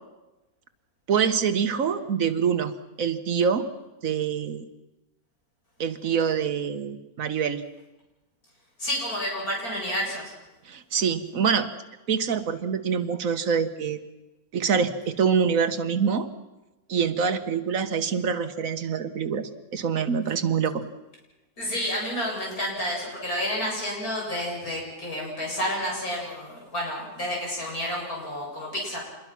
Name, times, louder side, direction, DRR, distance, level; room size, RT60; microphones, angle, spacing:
voice 1, 1.1-2.7 3.0-3.7 4.0-4.7 5.8-7.6 10.7-11.7 12.1-14.0 14.5-16.3 16.9-20.8, right 6 dB, 65° right, 9 dB, 1.6 m, -25 dB
voice 2, 8.8-10.3 21.6-29.0, equal, 75° left, -2 dB, 8.3 m, -30 dB
27.0 x 21.5 x 6.0 m, 1.0 s
omnidirectional pair, 1.6 m